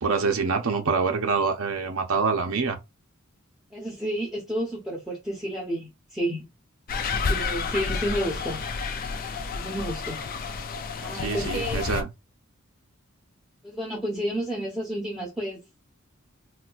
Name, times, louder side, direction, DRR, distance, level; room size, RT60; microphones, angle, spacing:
voice 1, 0.0-2.8 11.2-12.1, right 4 dB, 75° right, 0.7 m, -25 dB
voice 2, 3.7-6.5 7.3-8.6 9.5-10.2 11.0-11.8 13.6-15.6, equal, 5° right, 1.0 m, -31 dB
sound 1, 6.9-12.0, left 4 dB, 45° left, 0.4 m, -30 dB
4.2 x 2.2 x 2.4 m
head